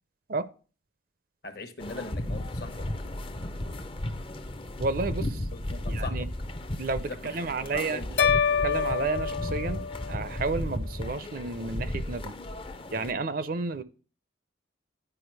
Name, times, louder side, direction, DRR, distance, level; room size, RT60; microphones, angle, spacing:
voice 1, 1.4-2.9 5.5-6.3 7.1-8.2, left 3 dB, 55° left, 1.1 m, -41 dB
sound 1, 1.8-13.1, left 1 dB, 25° left, 0.6 m, -34 dB
voice 2, 4.8-5.4 5.9-6.3 6.8-12.4 12.9-13.8, right 3 dB, 45° right, 0.5 m, -32 dB
sound 2, 8.2-10.5, left 7 dB, 75° left, 0.7 m, -27 dB
10.0 x 4.7 x 4.6 m
head